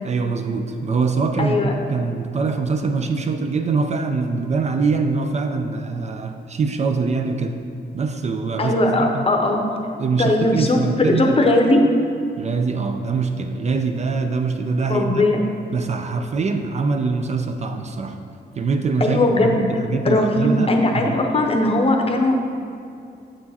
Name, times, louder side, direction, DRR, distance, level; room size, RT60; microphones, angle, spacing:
voice 1, 0.0-7.6 7.9-8.7 9.1-9.3 10.0-11.4 12.4-15.3 15.7-18.2 18.6-21.2, right 4 dB, 40° right, 6 dB, 0.4 m, -23 dB
voice 2, 1.4-1.7 8.6-9.6 10.2-11.9 14.9-15.4 19.0-19.6 20.0-22.4, left 2 dB, 35° left, 3 dB, 0.7 m, -19 dB
7.5 x 4.7 x 4.1 m, 2.5 s
cardioid pair, 110°, 18 cm